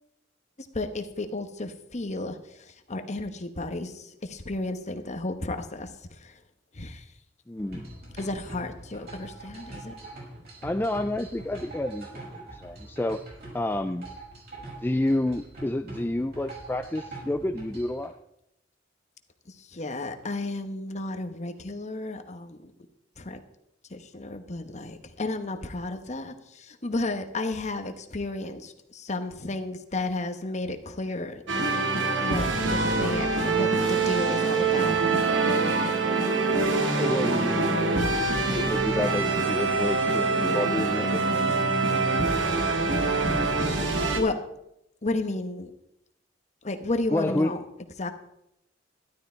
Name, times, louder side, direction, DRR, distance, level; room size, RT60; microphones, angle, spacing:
voice 1, 0.7-2.4 2.9-5.9 6.2-6.3 6.8-7.0 8.2-9.9 19.7-22.7 23.2-23.4 23.9-31.4 32.2-35.0 44.1-44.3 45.0-45.7 46.6-47.6 48.0-48.1, left 2 dB, 40° left, 8 dB, 1.2 m, -32 dB
voice 2, 7.5-7.9 10.6-13.2 13.5-14.1 14.8-18.1 37.0-41.2 47.1-47.5, left 1 dB, 10° left, 7 dB, 0.4 m, -29 dB
sound 1, 7.6-18.0, right 2 dB, 55° right, 6.1 m, -43 dB
sound 2, 31.5-44.2, right 3 dB, 75° right, 2.1 m, -24 dB
12.5 x 12.0 x 4.5 m, 0.80 s
head